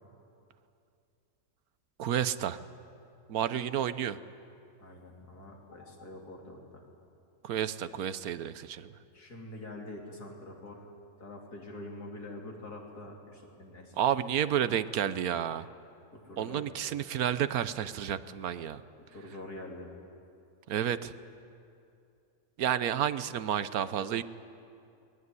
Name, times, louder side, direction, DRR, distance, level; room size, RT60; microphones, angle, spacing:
voice 1, 2.0-2.6 3.3-4.2 7.4-9.0 14.0-15.7 16.4-18.8 20.7-21.1 22.6-24.2, right 9 dB, 70° right, 14 dB, 1.2 m, -30 dB
voice 2, 4.8-6.9 9.1-10.9 11.2-14.0 16.1-16.7 19.1-19.9, left 1 dB, 85° left, 0 dB, 3.8 m, -45 dB
23.0 x 20.0 x 9.7 m, 2.6 s
omnidirectional pair, 1.6 m